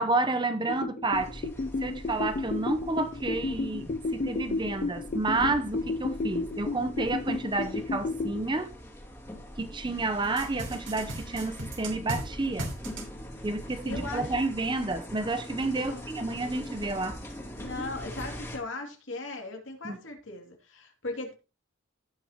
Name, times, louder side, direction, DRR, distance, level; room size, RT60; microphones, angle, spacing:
voice 1, 0.0-1.5 1.8-8.7 9.6-12.7 13.4-17.2 19.8-20.0, right 2 dB, 25° right, 0.7 m, -30 dB
sound 1, 0.7-8.4, left 3 dB, 40° left, 0.4 m, -32 dB
sound 2, 1.1-18.6, equal, 15° left, 2.5 m, -42 dB
sound 3, 10.4-12.2 12.6-13.0, right 1 dB, 70° right, 3.3 m, -35 dB
voice 2, 13.8-14.4 15.7-16.1 16.7-16.8 17.6-21.3, left 2 dB, 70° left, 2.6 m, -38 dB
17.0 x 6.1 x 3.0 m
head